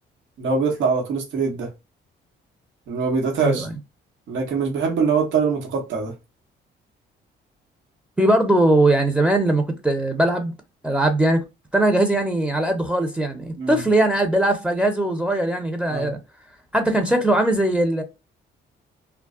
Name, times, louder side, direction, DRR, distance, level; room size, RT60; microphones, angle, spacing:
voice 1, 0.4-1.7 2.9-3.7 4.3-6.1 13.6-13.8 15.9-16.1, right 5 dB, 75° right, 1.0 m, -23 dB
voice 2, 3.4-3.7 8.2-10.5 10.8-11.4 11.7-16.2 16.7-18.0, right 1 dB, 5° right, 0.6 m, -20 dB
2.2 x 2.1 x 3.6 m
cardioid pair, 90°, 20 cm